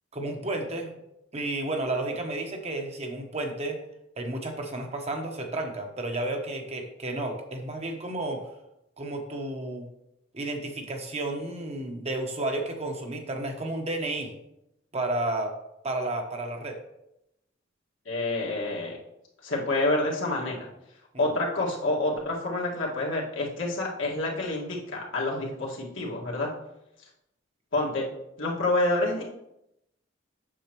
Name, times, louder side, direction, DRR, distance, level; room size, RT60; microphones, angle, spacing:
voice 1, 0.1-0.9 1.3-3.8 4.2-8.5 9.0-9.9 10.3-14.4 14.9-15.5 15.8-16.8 21.1-21.2, right 2 dB, 35° right, 3 dB, 1.0 m, -32 dB
voice 2, 18.1-19.0 19.4-20.7 21.2-26.5 27.7-28.1 28.4-29.2, left 2 dB, 80° left, -3 dB, 1.9 m, -28 dB
8.5 x 6.4 x 3.0 m, 0.85 s
head